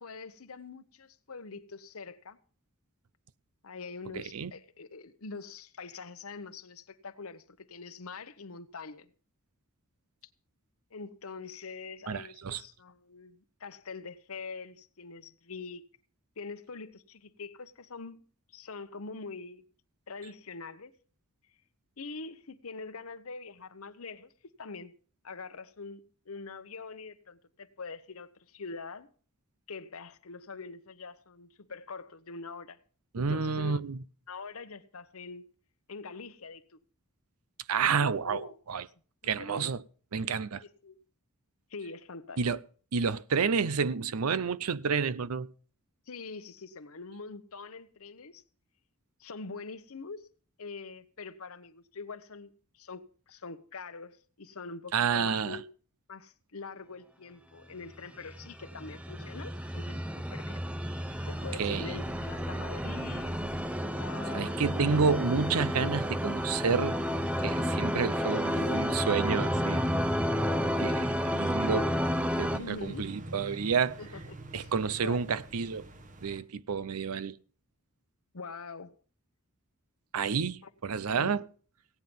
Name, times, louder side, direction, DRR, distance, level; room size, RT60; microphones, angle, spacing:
voice 1, 0.0-2.4 3.6-9.1 10.9-15.8 16.4-18.2 18.5-19.6 20.1-20.9 22.0-24.3 24.6-24.9 25.2-26.0 26.3-29.1 29.7-32.8 33.2-33.8 34.3-35.4 35.9-36.8 37.8-38.6 39.2-39.7 40.6-41.0 41.7-42.4 46.1-48.4 49.2-50.3 50.6-55.7 56.1-60.6 61.3-63.4 64.0-64.6 64.9-65.1 72.6-73.1 74.0-74.7 75.0-75.2 78.3-79.0 80.6-80.7 81.1-81.3, left 4 dB, 70° left, 1.0 m, -44 dB
voice 2, 4.1-4.5 12.1-12.6 33.1-34.0 37.7-38.8 39.2-39.8 40.1-40.6 42.4-42.6 42.9-45.5 54.9-55.6 61.6-62.0 64.3-67.0 67.4-70.0 70.8-71.9 72.2-74.0 74.5-75.9 76.2-77.3 80.1-81.4, right 5 dB, 80° right, 0.6 m, -30 dB
sound 1, 58.2-72.6, equal, 5° right, 0.6 m, -31 dB
sound 2, 61.1-76.4, right 1 dB, 35° right, 1.1 m, -47 dB
16.5 x 9.5 x 5.3 m
head